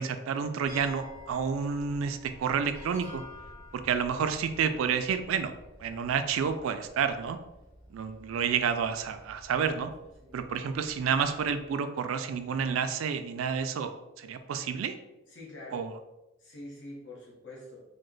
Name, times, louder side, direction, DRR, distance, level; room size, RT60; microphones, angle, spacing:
voice 1, 0.0-3.2 3.7-5.5 5.8-7.4 7.9-9.9 10.3-13.9 14.2-14.9 15.7-16.0, right 6 dB, 85° right, 9 dB, 0.3 m, -30 dB
sound 1, 0.6-11.7, left 2 dB, 40° left, 1.3 m, -51 dB
voice 2, 15.3-15.8 16.4-17.9, left 1 dB, 60° left, -3 dB, 1.0 m, -45 dB
3.1 x 2.1 x 3.8 m, 0.96 s
head